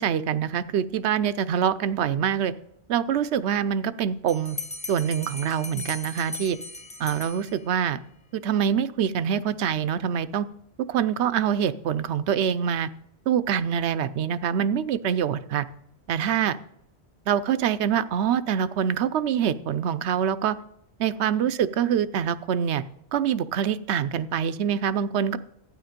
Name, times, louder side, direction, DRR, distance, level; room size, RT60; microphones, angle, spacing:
voice 1, 0.0-2.5 2.9-4.6 4.9-6.6 7.0-8.0 8.3-10.5 10.9-12.9 13.3-15.7 16.1-16.6 17.3-20.6 21.0-22.8 23.1-25.4, right 8 dB, 85° right, 14 dB, 0.9 m, -25 dB
Bell, 4.3-7.9, left 2 dB, 5° left, 0.9 m, -38 dB
12.5 x 9.5 x 5.1 m, 0.75 s
omnidirectional pair, 1.1 m